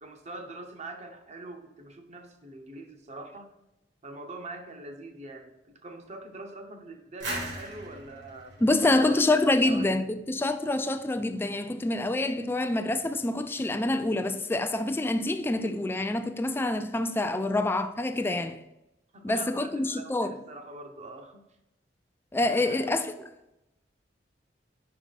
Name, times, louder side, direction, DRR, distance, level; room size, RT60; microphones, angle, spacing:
voice 1, 0.0-3.5 4.0-9.2 9.6-9.9 10.3-10.5 19.1-21.4 22.3-23.0, right 2 dB, 40° right, 0.8 m, -43 dB
sound 1, 7.2-9.9, right 1 dB, 75° right, 2.3 m, -39 dB
voice 2, 8.6-18.6 19.2-20.4 22.3-23.1, left 2 dB, 10° left, 0.3 m, -26 dB
5.0 x 4.8 x 4.0 m
head